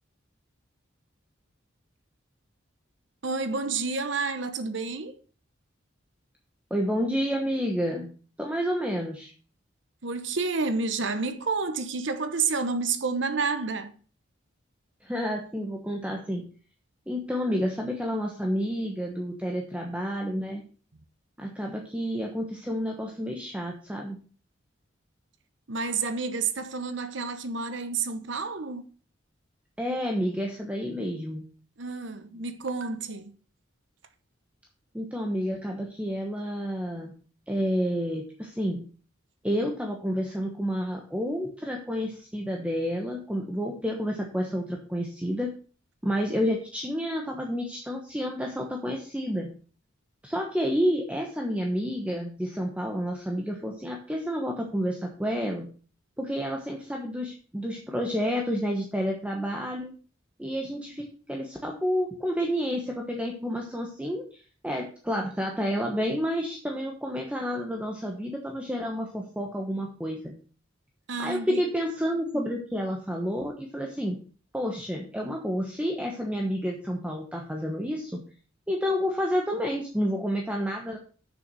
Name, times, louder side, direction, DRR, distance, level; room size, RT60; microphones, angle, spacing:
voice 1, 3.2-5.2 10.0-13.9 25.7-28.9 31.8-33.3 71.1-71.6, right 4 dB, 65° right, 1.0 m, -30 dB
voice 2, 6.7-8.1 8.4-9.3 15.0-16.5 17.1-20.6 21.4-24.2 29.8-31.5 34.9-37.1 37.5-38.8 39.4-45.5 46.0-49.5 50.2-55.7 56.2-59.9 60.4-70.4 71.2-74.2 74.5-78.2 78.7-81.0, equal, 5° right, 1.1 m, -30 dB
7.0 x 6.1 x 6.2 m
head